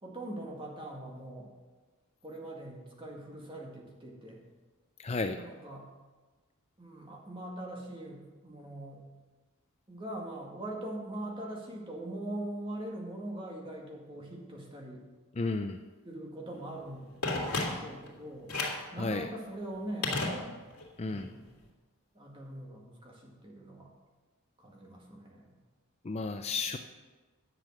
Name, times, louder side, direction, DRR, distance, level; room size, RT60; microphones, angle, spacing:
voice 1, 0.0-1.5 2.2-4.4 5.4-5.9 6.8-9.0 9.9-15.0 16.1-17.2 17.4-18.5 18.9-20.5 21.1-21.6 22.1-23.9 24.6-25.5 26.5-26.6, right 1 dB, 25° right, -1 dB, 1.9 m, -42 dB
voice 2, 5.0-5.4 15.3-15.8 18.9-19.3 21.0-21.3 26.0-26.8, left 3 dB, 30° left, 6 dB, 0.4 m, -33 dB
Telephone, 17.2-18.1 18.5-18.9 20.0-20.9 21.2-21.3, left 2 dB, 80° left, 2.8 m, -33 dB
10.5 x 7.5 x 6.3 m, 1.3 s
head